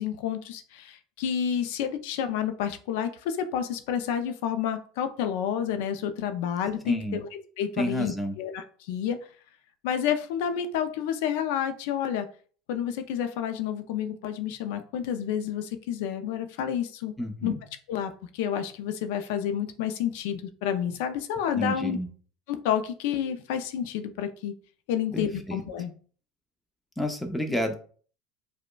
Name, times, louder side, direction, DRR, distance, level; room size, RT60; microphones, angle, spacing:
voice 1, 0.0-9.2 9.8-12.3 12.7-17.1 17.4-17.5 17.9-22.0 22.5-24.5 24.9-25.9, left 9 dB, 75° left, 9 dB, 0.4 m, -30 dB
voice 2, 6.9-7.2 7.8-8.3 17.2-17.5 21.5-22.1 25.1-25.6 27.0-27.8, equal, 5° left, 5 dB, 0.5 m, -30 dB
4.9 x 2.1 x 2.2 m, 0.43 s
supercardioid pair, 150°, 0 cm